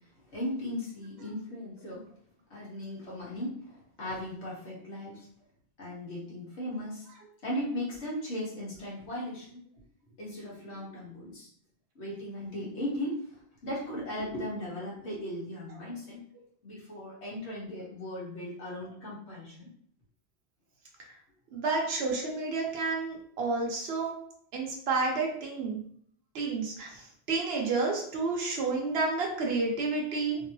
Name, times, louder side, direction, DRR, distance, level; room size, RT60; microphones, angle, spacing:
voice 1, 0.2-2.0 2.5-5.3 5.8-7.1 7.4-9.6 10.2-11.5 11.9-16.2 16.6-19.7, left 1 dB, 90° left, -6 dB, 1.5 m, -37 dB
voice 2, 21.5-24.1 24.5-25.8 26.3-30.4, right 3 dB, 70° right, 0 dB, 1.0 m, -30 dB
3.2 x 2.7 x 2.7 m, 0.63 s
omnidirectional pair, 1.1 m